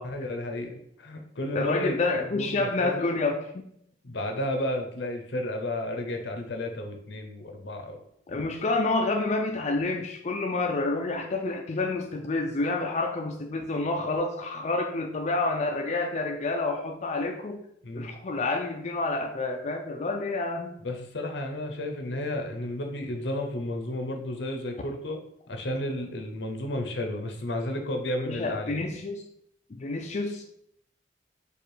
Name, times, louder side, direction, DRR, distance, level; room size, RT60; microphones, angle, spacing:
voice 1, 0.0-2.0 2.3-3.1 4.0-8.0 17.8-18.2 20.8-25.2 25.5-28.8, left 1 dB, 75° left, 4 dB, 0.8 m, -32 dB
voice 2, 1.6-3.6 8.3-17.6 17.9-20.8 28.2-29.2 29.7-30.4, left 3 dB, 40° left, 2 dB, 0.4 m, -28 dB
5.0 x 2.4 x 4.5 m, 0.71 s
head